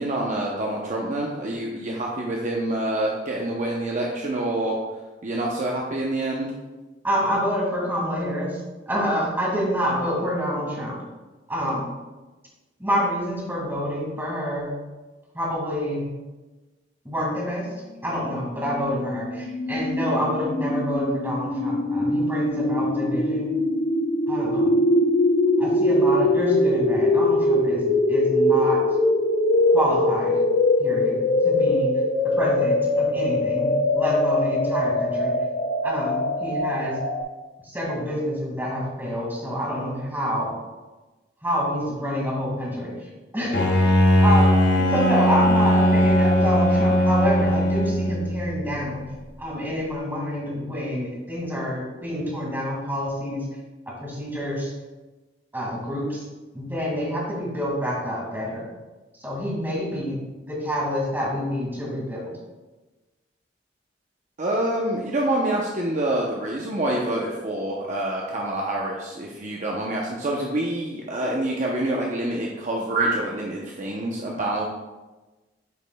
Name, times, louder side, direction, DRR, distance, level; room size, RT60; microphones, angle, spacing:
voice 1, 0.0-4.8 5.2-6.5 64.4-74.6, right 1 dB, 45° right, -2 dB, 0.7 m, -26 dB
voice 2, 7.0-8.6 8.9-11.0 11.5-11.9 12.8-14.7 15.3-16.0 17.0-17.7 18.0-23.5 24.3-24.7 25.6-28.8 29.7-30.4 30.8-31.9 32.4-35.3 35.8-37.0 37.6-40.5 41.4-43.6 44.2-49.0 49.4-53.4 54.0-54.7 55.5-56.2 56.5-58.7 59.2-60.2 60.5-62.3, equal, 10° right, -4 dB, 2.0 m, -27 dB
sound 1, 18.1-37.2, left 1 dB, 50° left, 0.6 m, -22 dB
Bowed string instrument, 43.5-48.5, equal, 75° left, 1.1 m, -19 dB
9.2 x 5.2 x 2.2 m, 1.2 s
head